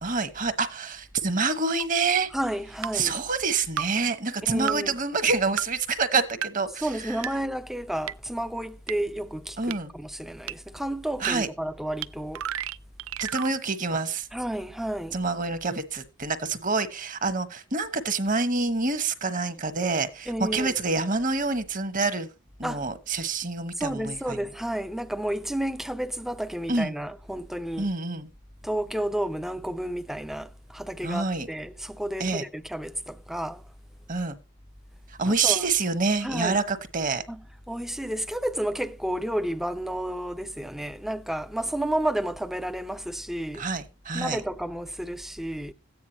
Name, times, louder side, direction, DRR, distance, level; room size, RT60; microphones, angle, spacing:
voice 1, 0.0-2.3 2.9-7.2 9.6-9.9 11.2-11.5 13.2-14.3 15.1-22.3 22.6-24.4 26.7-26.9 27.8-28.3 31.0-31.5 32.2-32.4 34.1-34.4 35.2-37.2 43.5-44.4, right 4 dB, 40° right, 1.2 m, -27 dB
sound 1, 1.8-1.9 2.8-2.9 3.8-3.9 4.7-4.8 5.6-5.7 6.4-6.5 7.2-7.3 8.1-8.2 8.9-9.0 9.7-9.8 10.5-10.6 11.2-11.3 12.0-12.1 12.3-13.5, right 10 dB, 75° right, 0.4 m, -31 dB
voice 2, 2.3-3.1 4.4-4.9 6.8-12.4 14.3-15.2 20.3-20.7 22.6-22.8 23.8-27.9 28.6-33.6 35.4-35.6 36.2-36.6 37.3-43.6 44.1-45.7, right 1 dB, ahead, 0.5 m, -31 dB
14.5 x 9.5 x 2.9 m
head